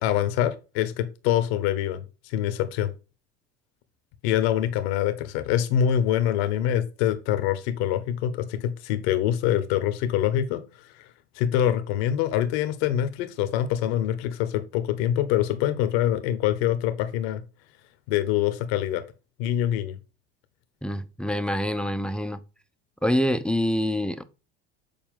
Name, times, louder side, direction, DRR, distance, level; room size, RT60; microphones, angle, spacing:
voice 1, 0.0-2.9 4.2-10.6 10.9-11.0 11.3-17.4 18.1-19.0 19.4-19.9, left 11 dB, 70° left, 1.2 m, -25 dB
voice 2, 20.8-22.4 23.0-24.2, equal, 5° left, 0.7 m, -26 dB
7.1 x 4.3 x 3.7 m
hypercardioid pair, 80°, 32 cm